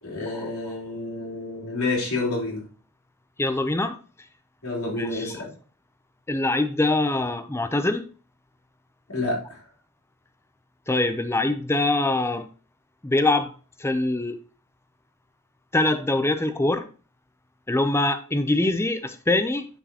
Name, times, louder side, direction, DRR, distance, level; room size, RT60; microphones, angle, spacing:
voice 1, 0.0-2.6 4.6-5.5 9.1-9.6, left 2 dB, 85° left, -5 dB, 3.8 m, -29 dB
voice 2, 3.4-4.0 5.0-5.3 6.3-8.1 10.9-12.5 13.0-13.5 13.8-14.4 15.7-16.9 17.7-19.7, left 2 dB, 10° left, 9 dB, 0.6 m, -23 dB
10.0 x 4.5 x 2.9 m, 0.37 s
head